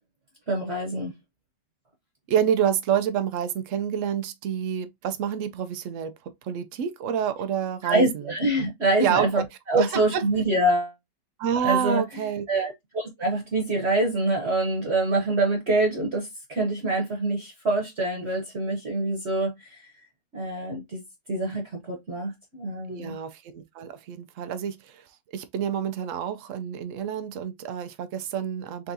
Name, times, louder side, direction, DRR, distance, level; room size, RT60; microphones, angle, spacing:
voice 1, 0.5-1.1 7.8-10.9 11.6-12.0 12.5-19.9 20.3-21.0 21.3-23.2, right 2 dB, 45° right, 1.2 m, -25 dB
voice 2, 2.3-8.3 9.0-9.4 9.7-10.2 11.4-12.5 22.9-28.9, right 8 dB, 70° right, 0.7 m, -28 dB
3.9 x 3.5 x 2.6 m
omnidirectional pair, 1.9 m